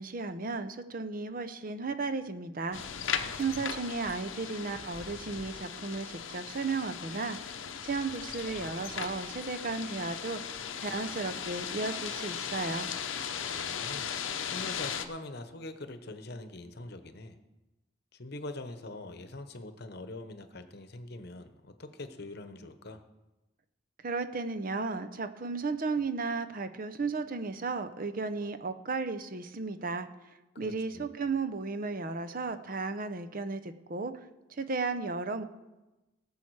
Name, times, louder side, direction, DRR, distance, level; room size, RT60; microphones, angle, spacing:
voice 1, 0.0-2.8 3.4-10.4 10.8-12.9 24.0-30.1 30.6-35.4, right 4 dB, 45° right, 9 dB, 0.7 m, -34 dB
sound 1, 2.7-15.1, left 7 dB, 80° left, 0.8 m, -37 dB
voice 2, 3.0-3.6 13.4-14.1 14.4-17.4 18.1-23.0 30.6-31.1, left 2 dB, 55° left, 9 dB, 0.9 m, -44 dB
19.0 x 7.2 x 4.7 m, 1.1 s
head